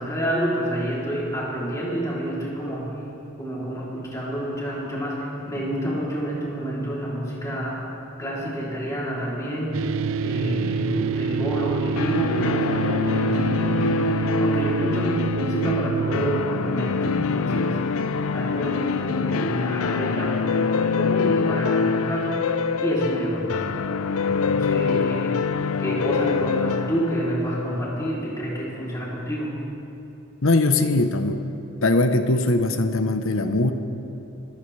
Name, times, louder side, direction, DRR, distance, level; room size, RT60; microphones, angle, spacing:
voice 1, 0.0-3.0 3.4-7.9 8.2-9.9 10.2-17.9 18.3-23.7 24.2-29.6, right 1 dB, 15° left, -6 dB, 3.3 m, -28 dB
sound 1, 9.7-16.4, right 6 dB, 70° right, 0.4 m, -27 dB
sound 2, 12.0-28.7, left 5 dB, 90° left, 0.5 m, -25 dB
voice 2, 30.4-31.4 31.8-33.7, left 2 dB, 70° left, 8 dB, 1.0 m, -20 dB
24.5 x 15.0 x 3.4 m, 2.8 s
head